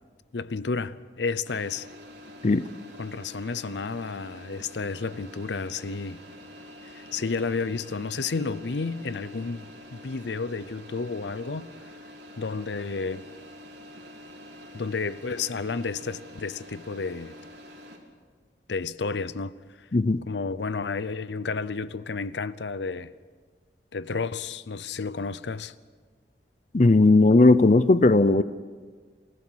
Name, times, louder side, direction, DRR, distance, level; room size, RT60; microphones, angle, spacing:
voice 1, 0.3-1.9 3.0-6.2 6.8-11.7 12.4-13.2 14.7-17.3 18.7-19.5 19.8-19.9 20.3-23.1 23.9-25.7, left 4 dB, 85° left, 0.7 m, -31 dB
sound 1, 1.4-18.0, left 1 dB, 85° right, 3.4 m, -46 dB
voice 2, 19.9-20.2 26.7-28.4, left 2 dB, 40° left, 0.5 m, -17 dB
28.0 x 16.0 x 6.4 m
head